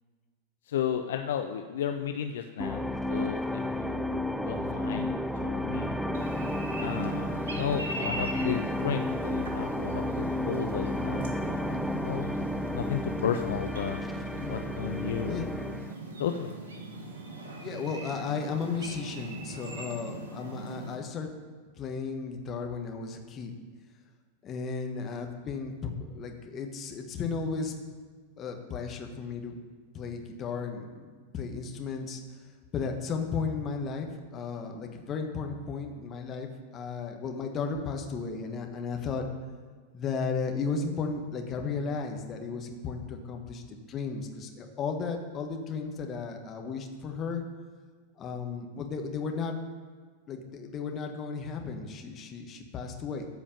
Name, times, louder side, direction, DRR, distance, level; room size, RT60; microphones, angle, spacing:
voice 1, 0.7-5.1 5.4-6.0 6.8-12.4 12.7-14.0 14.5-15.5 16.2-16.5, left 8 dB, 60° left, 6 dB, 0.5 m, -34 dB
sound 1, 2.6-15.9, left 1 dB, ahead, 0.4 m, -32 dB
sound 2, 6.1-21.0, right 2 dB, 65° right, 1.7 m, -41 dB
voice 2, 17.6-21.3 21.8-23.5 24.4-27.7 28.4-29.6 29.9-32.2 32.7-39.3 39.9-47.4 48.2-49.6 50.3-53.3, left 5 dB, 30° left, 3 dB, 1.5 m, -34 dB
14.0 x 5.0 x 6.9 m, 1.5 s
figure-of-eight pair, 90°, 0 cm